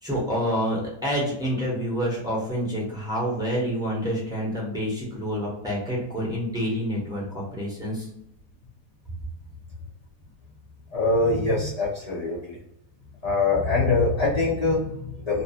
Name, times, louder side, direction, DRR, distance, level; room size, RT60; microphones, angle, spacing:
voice 1, 0.0-8.1, equal, 5° right, -5 dB, 0.8 m, -28 dB
voice 2, 10.9-12.6 13.2-15.4, left 3 dB, 75° left, -8 dB, 0.3 m, -23 dB
2.9 x 2.3 x 2.8 m, 0.80 s
omnidirectional pair, 1.9 m